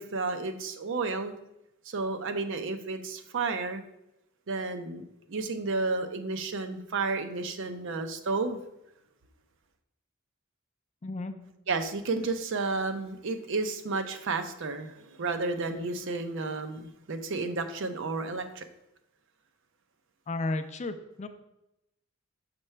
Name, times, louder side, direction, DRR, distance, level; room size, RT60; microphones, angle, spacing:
voice 1, 0.0-1.3 1.9-3.8 4.5-8.6 11.7-18.7, right 3 dB, 65° right, 8 dB, 0.6 m, -32 dB
voice 2, 11.0-11.3 20.3-21.3, left 2 dB, 35° left, 9 dB, 0.5 m, -33 dB
5.9 x 5.4 x 3.3 m, 0.86 s
head